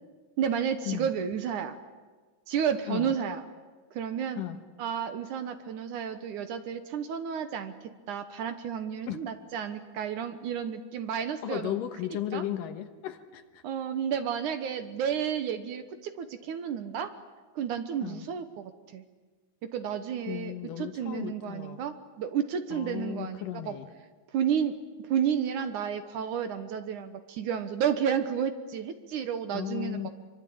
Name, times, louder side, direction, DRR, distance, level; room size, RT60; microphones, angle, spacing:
voice 1, 0.4-1.8 2.5-3.4 3.9-4.4 4.8-11.8 12.1-12.4 13.6-17.1 17.5-19.1 19.6-23.7 24.3-30.1, right 8 dB, 65° right, 9 dB, 2.4 m, -31 dB
voice 2, 11.4-13.6 18.0-18.3 20.3-21.8 22.7-23.9 29.5-30.1, left 12 dB, 70° left, 8 dB, 2.8 m, -35 dB
25.5 x 24.5 x 8.8 m, 1.4 s
omnidirectional pair, 4.2 m